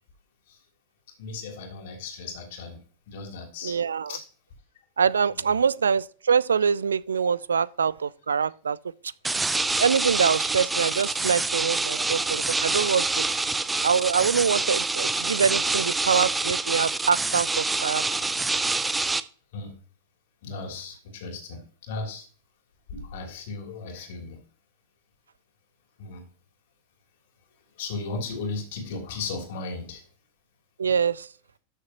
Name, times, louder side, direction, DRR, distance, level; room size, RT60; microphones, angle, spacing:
voice 1, 1.2-2.8 3.1-3.7 4.1-4.2 5.3-5.6 7.2-7.3 11.9-12.0 13.5-13.6 18.9-19.1 19.5-19.7 20.4-22.3 22.9-24.4 26.0-26.2 27.8-30.0, left 3 dB, 55° left, 3.0 m, -36 dB
voice 2, 3.6-4.1 5.0-8.8 9.8-13.2 13.8-18.0 30.8-31.3, right 6 dB, 70° right, 0.3 m, -24 dB
sound 1, 9.2-19.2, right 3 dB, 10° right, 0.5 m, -26 dB
13.0 x 6.7 x 2.9 m
figure-of-eight pair, 90°, 0 cm